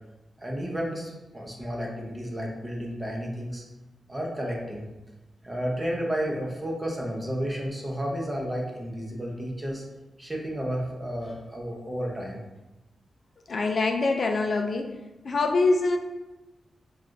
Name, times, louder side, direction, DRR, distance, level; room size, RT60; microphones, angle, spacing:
voice 1, 0.4-3.6 4.1-4.8 5.4-9.8 10.2-12.4, equal, 10° right, -2 dB, 0.8 m, -32 dB
voice 2, 13.5-15.0 15.2-16.0, left 3 dB, 45° left, 3 dB, 0.3 m, -24 dB
6.0 x 2.4 x 2.5 m, 1.1 s
wide cardioid pair, 135°, 0 cm